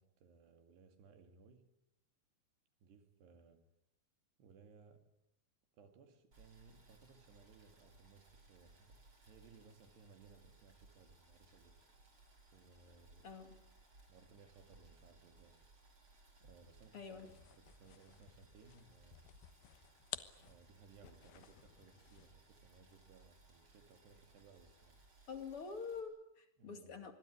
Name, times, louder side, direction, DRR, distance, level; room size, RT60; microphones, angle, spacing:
voice 1, 0.0-1.7 2.8-3.7 4.4-5.1 5.7-11.8 12.5-13.3 14.1-15.6 16.4-19.2 20.4-25.0 26.6-27.1, right 5 dB, 60° right, 4.0 m, -63 dB
Boiling, 6.3-26.0, right 2 dB, 25° right, 5.3 m, -65 dB
voice 2, 13.2-13.6 16.9-17.3 25.3-27.1, left 5 dB, 45° left, 2.0 m, -46 dB
sound 1, 17.1-22.5, left 12 dB, 75° left, 2.3 m, -53 dB
26.0 x 21.5 x 10.0 m
omnidirectional pair, 6.0 m